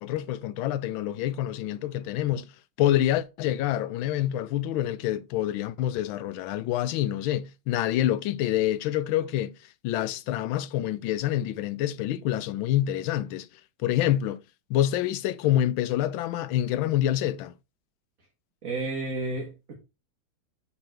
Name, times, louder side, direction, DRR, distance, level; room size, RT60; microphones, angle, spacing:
voice 1, 0.0-2.5 2.8-9.5 9.8-13.5 13.8-14.4 14.7-17.5, left 12 dB, 80° left, 1.4 m, -27 dB
voice 2, 18.6-19.8, right 2 dB, 45° right, 1.7 m, -31 dB
6.9 x 5.6 x 4.4 m
omnidirectional pair, 2.3 m